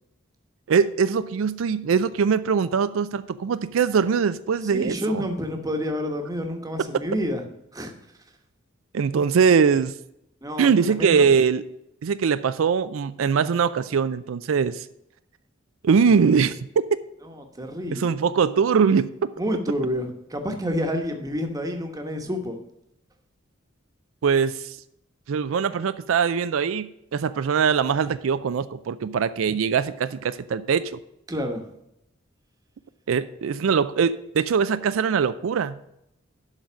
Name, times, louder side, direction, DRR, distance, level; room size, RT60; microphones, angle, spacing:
voice 1, 0.7-5.2 8.9-9.9 10.6-11.6 12.0-14.9 15.8-16.6 17.9-19.3 24.2-24.8 25.3-26.9 27.1-31.0 33.1-35.8, right 6 dB, 85° right, 13 dB, 0.4 m, -22 dB
voice 2, 4.7-7.4 7.7-7.9 10.4-11.3 17.2-18.1 19.4-22.6 31.3-31.6, equal, 20° right, 4 dB, 1.1 m, -29 dB
11.5 x 3.9 x 6.1 m, 0.80 s
head